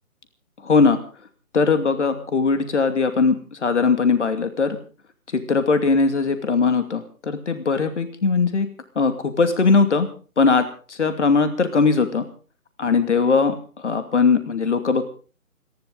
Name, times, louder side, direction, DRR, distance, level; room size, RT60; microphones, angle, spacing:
voice 1, 0.6-1.0 1.5-4.8 5.3-8.7 9.0-10.1 10.4-12.3 12.8-13.5 13.8-15.2, left 4 dB, 50° left, 8 dB, 2.6 m, -20 dB
29.0 x 11.5 x 4.0 m, 0.38 s
figure-of-eight pair, 165°, 44 cm